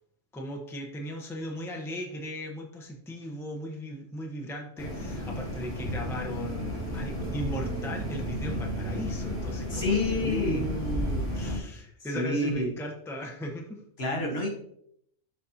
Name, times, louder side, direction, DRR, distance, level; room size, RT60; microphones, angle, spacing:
voice 1, 0.3-13.8, equal, ahead, 0 dB, 0.9 m, -37 dB
sound 1, 4.8-11.6, equal, 75° left, 2.3 m, -33 dB
sound 2, 6.1-11.6, right 3 dB, 55° right, 0.7 m, -41 dB
voice 2, 9.7-10.7 12.1-12.7 14.0-14.5, left 2 dB, 55° left, 0 dB, 1.7 m, -28 dB
12.0 x 4.1 x 2.8 m, 0.70 s
omnidirectional pair, 1.3 m